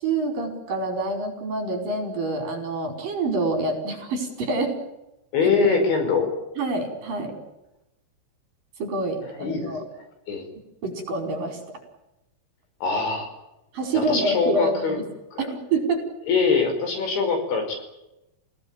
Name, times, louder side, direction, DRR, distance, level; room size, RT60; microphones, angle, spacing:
voice 1, 0.0-4.8 6.6-7.4 8.8-9.8 10.8-11.6 13.7-15.0 15.4-16.0, right 2 dB, 45° right, 4 dB, 6.3 m, -26 dB
voice 2, 5.3-6.3 9.3-9.7 10.3-10.4 12.8-13.3 13.9-15.0 15.3-15.5 16.3-17.8, left 4 dB, 65° left, 6 dB, 7.3 m, -23 dB
29.0 x 17.5 x 9.0 m, 0.94 s
omnidirectional pair, 5.7 m